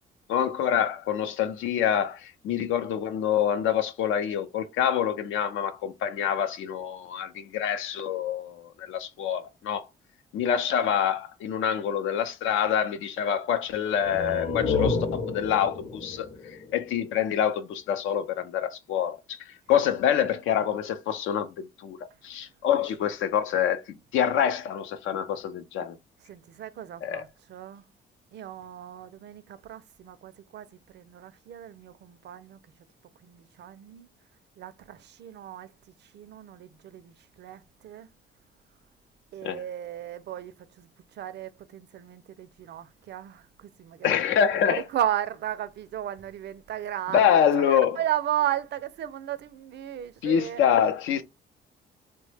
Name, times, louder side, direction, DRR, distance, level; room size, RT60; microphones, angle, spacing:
voice 1, 0.3-9.8 10.3-22.0 22.2-26.0 27.0-27.2 39.4-39.6 44.0-44.8 47.1-48.0 50.2-51.2, left 9 dB, 80° left, 0.5 m, -26 dB
sound 1, 14.0-17.5, left 4 dB, 25° left, 0.6 m, -30 dB
voice 2, 26.3-27.8 28.3-32.6 33.2-34.1 34.6-35.7 36.0-38.1 39.3-50.6, right 11 dB, 60° right, 0.4 m, -35 dB
3.0 x 2.1 x 3.3 m
cardioid pair, 90°, 20 cm